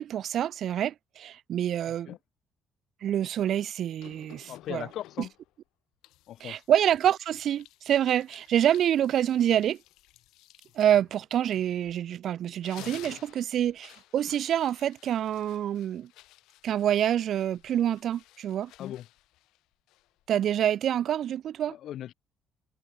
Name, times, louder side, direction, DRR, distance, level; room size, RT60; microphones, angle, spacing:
voice 1, 0.0-2.1 3.0-4.9 6.4-9.8 10.8-16.1 16.6-18.7 20.3-21.7, right 10 dB, 60° right, 0.5 m, -27 dB
sound 1, 4.0-5.5 6.0-12.1 12.4-20.3, left 17 dB, 90° left, 7.0 m, -54 dB
voice 2, 4.5-5.3 6.3-6.6 18.8-19.1 21.7-22.1, left 12 dB, 65° left, 0.6 m, -38 dB
cardioid pair, 105°, 0 cm